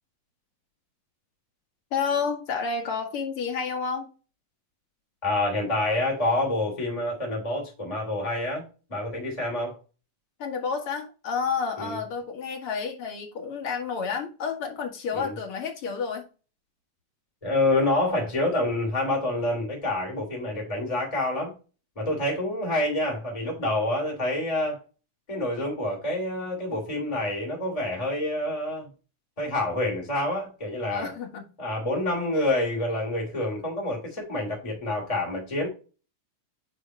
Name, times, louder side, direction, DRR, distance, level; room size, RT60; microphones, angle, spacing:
voice 1, 1.9-4.1 10.4-16.2 30.9-31.4, left 5 dB, 50° left, 2.2 m, -30 dB
voice 2, 5.2-8.6 8.9-9.8 11.8-12.0 15.1-15.4 17.4-21.5 21.9-24.8 25.3-28.9 29.4-31.1 31.6-35.7, left 1 dB, 10° left, 2.9 m, -27 dB
9.3 x 4.1 x 3.1 m
omnidirectional pair, 3.6 m